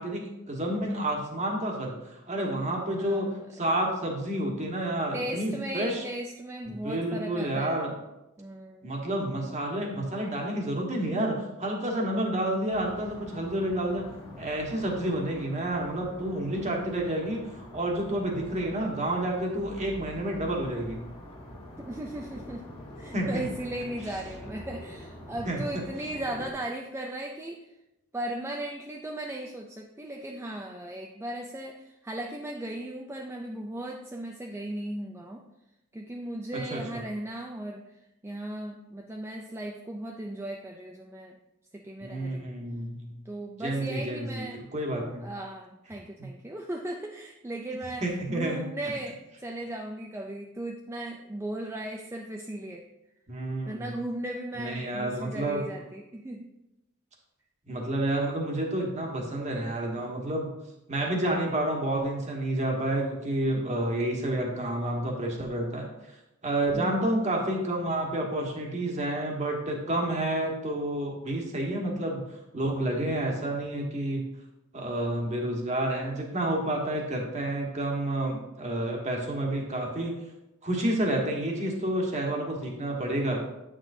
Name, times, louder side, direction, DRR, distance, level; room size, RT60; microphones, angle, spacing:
voice 1, 0.0-6.0 6.7-7.9 8.8-14.0 14.4-21.1 23.1-23.4 25.4-25.8 36.7-37.0 42.0-43.1 43.6-44.4 44.7-45.3 48.0-48.6 53.3-53.9 54.6-55.6 57.7-60.5 60.9-65.9 66.4-72.2 72.5-74.2 74.7-80.1 80.6-83.4, right 1 dB, 35° right, 0 dB, 1.4 m, -29 dB
voice 2, 3.0-3.5 5.1-7.9 8.4-8.9 21.8-22.6 23.0-27.6 28.1-35.4 35.9-37.8 38.2-41.4 41.7-42.5 43.3-44.6 45.2-48.0 48.3-52.8 53.7-56.5 66.7-67.1, right 1 dB, 10° right, 1 dB, 0.4 m, -37 dB
sound 1, 12.7-26.5, equal, 25° left, 1.8 m, -45 dB
8.8 x 6.4 x 2.7 m, 0.92 s
head